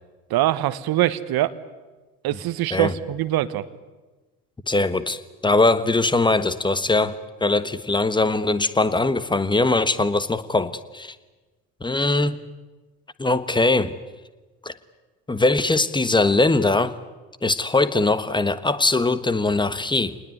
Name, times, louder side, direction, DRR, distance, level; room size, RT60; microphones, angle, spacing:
voice 1, 0.3-1.6 2.2-3.7, right 14 dB, 50° right, 14 dB, 1.4 m, -23 dB
voice 2, 4.7-11.1 11.8-12.4 13.2-14.0 14.6-14.8 15.3-16.9 17.4-20.2, left 2 dB, 10° left, 14 dB, 1.4 m, -21 dB
27.0 x 20.0 x 9.4 m, 1.2 s
hypercardioid pair, 65°, 47 cm